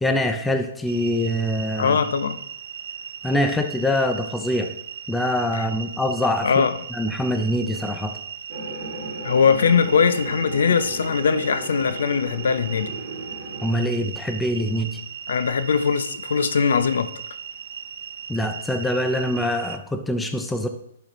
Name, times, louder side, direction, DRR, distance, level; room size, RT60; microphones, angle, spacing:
voice 1, 0.0-2.0 3.2-4.7 5.1-6.5 6.9-8.1 13.6-15.0 18.3-20.7, left 1 dB, 5° left, 0.4 m, -24 dB
sound 1, 0.9-19.8, right 8 dB, 65° right, 0.5 m, -37 dB
voice 2, 1.8-2.4 5.5-5.7 6.4-6.8 9.2-12.9 15.3-17.1, left 6 dB, 80° left, 0.6 m, -21 dB
sound 2, 8.5-13.7, right 2 dB, 40° right, 2.5 m, -36 dB
10.5 x 5.0 x 3.1 m
hypercardioid pair, 170°, 0 cm